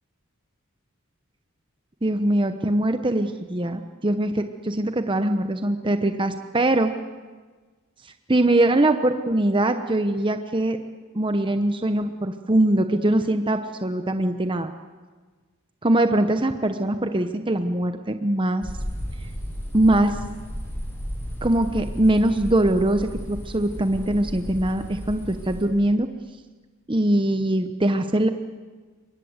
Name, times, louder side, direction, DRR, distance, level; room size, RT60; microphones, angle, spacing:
voice 1, 2.0-6.9 8.0-10.8 11.1-14.7 15.8-18.7 19.7-20.2 21.4-26.1 26.9-28.3, right 1 dB, 25° right, 8 dB, 0.9 m, -22 dB
sound 1, 18.6-25.6, equal, 10° left, 7.7 m, -34 dB
28.0 x 23.0 x 8.1 m, 1.4 s
head